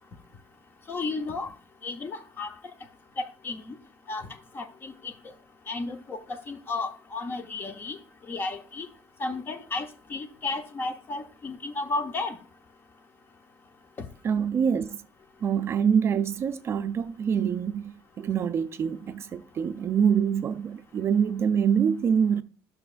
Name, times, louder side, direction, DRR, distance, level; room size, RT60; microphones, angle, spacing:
voice 1, 0.9-1.5 1.8-2.5 3.2-3.7 4.1-4.3 4.5-5.1 5.7-8.0 8.3-8.9 9.2-12.4 14.0-14.1, left 3 dB, 30° left, 0.8 m, -33 dB
voice 2, 14.2-15.0 15.4-22.4, right 7 dB, 35° right, 0.4 m, -25 dB
11.0 x 6.3 x 2.5 m
cardioid pair, 135°, 7 cm